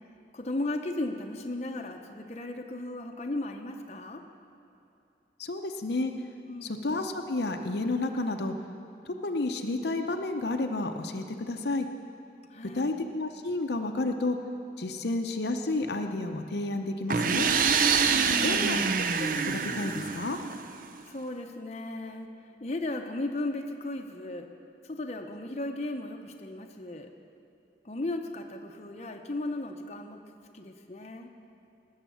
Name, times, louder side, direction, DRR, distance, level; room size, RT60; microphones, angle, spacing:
voice 1, 0.3-4.2 6.4-6.8 12.5-12.9 18.0-18.9 21.1-22.3 22.6-24.5 24.8-27.1 27.8-30.2 30.5-31.3, left 2 dB, 35° left, 3 dB, 0.7 m, -36 dB
voice 2, 5.4-6.1 6.6-8.6 9.1-11.9 12.7-14.4 14.8-17.5 18.4-18.8 19.2-20.4, left 2 dB, 70° left, 5 dB, 0.7 m, -31 dB
sound 1, 17.1-20.8, right 5 dB, 50° right, 0.5 m, -26 dB
18.0 x 6.5 x 7.2 m, 2.8 s
head